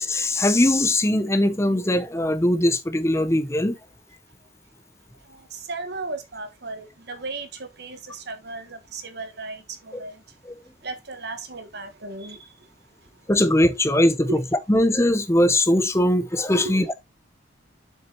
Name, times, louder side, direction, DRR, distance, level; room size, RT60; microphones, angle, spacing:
voice 1, 0.0-3.8 9.9-10.0 10.5-10.6 13.3-14.3 14.7-16.9, left 1 dB, 15° left, 0.7 m, -20 dB
voice 2, 5.7-7.5 7.8-10.1 10.8-12.4 14.3-14.4 16.6-16.8, right 3 dB, 55° right, 1.5 m, -35 dB
7.4 x 6.0 x 3.0 m
head